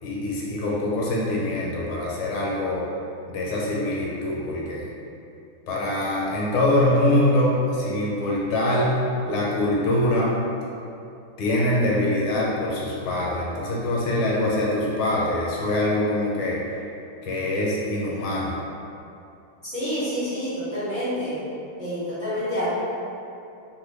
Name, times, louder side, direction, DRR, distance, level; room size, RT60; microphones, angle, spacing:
voice 1, 0.0-2.8 3.3-4.9 5.7-9.0 9.3-10.3 11.4-16.6 17.2-18.5, left 1 dB, 80° left, -4 dB, 1.4 m, -24 dB
voice 2, 19.6-21.4 21.8-22.7, equal, 35° right, -15 dB, 0.8 m, -28 dB
3.3 x 2.5 x 3.2 m, 2.7 s
omnidirectional pair, 2.4 m